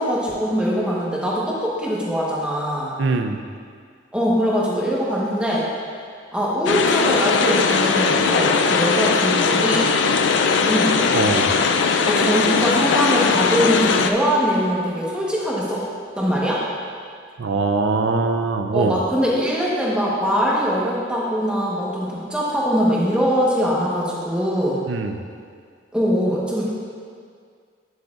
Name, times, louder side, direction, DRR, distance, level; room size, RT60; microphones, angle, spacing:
voice 1, 0.0-2.9 4.1-5.7 6.3-9.9 10.7-11.0 12.1-15.8 16.2-16.6 18.7-24.8 25.9-26.7, equal, 5° right, -5 dB, 1.1 m, -22 dB
voice 2, 3.0-3.4 11.1-11.6 17.4-19.0 24.9-25.2, right 3 dB, 65° right, 5 dB, 0.5 m, -22 dB
sound 1, 6.7-14.1, left 5 dB, 65° left, 0.4 m, -19 dB
9.5 x 7.6 x 2.5 m, 2.1 s
head